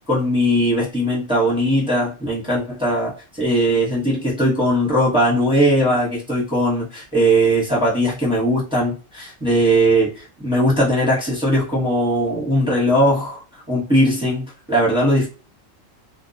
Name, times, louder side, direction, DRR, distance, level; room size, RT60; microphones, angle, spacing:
voice 1, 0.1-13.4 13.7-15.3, equal, 5° right, -6 dB, 0.8 m, -19 dB
2.2 x 2.1 x 2.6 m, 0.33 s
omnidirectional pair, 1.4 m